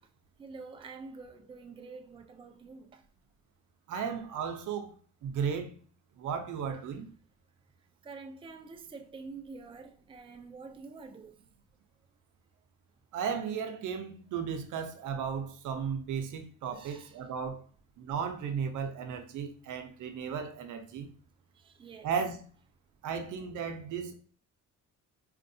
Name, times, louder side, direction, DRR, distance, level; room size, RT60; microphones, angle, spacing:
voice 1, 0.4-3.1 8.0-11.4 16.7-17.2 21.5-22.1, right 4 dB, 20° right, 0.4 m, -47 dB
voice 2, 3.9-4.9 5.2-5.8 6.2-7.1 13.1-17.6 18.0-21.1 22.0-22.4 23.0-24.2, right 6 dB, 80° right, 0.8 m, -35 dB
4.4 x 2.6 x 2.6 m
cardioid pair, 90°, 30 cm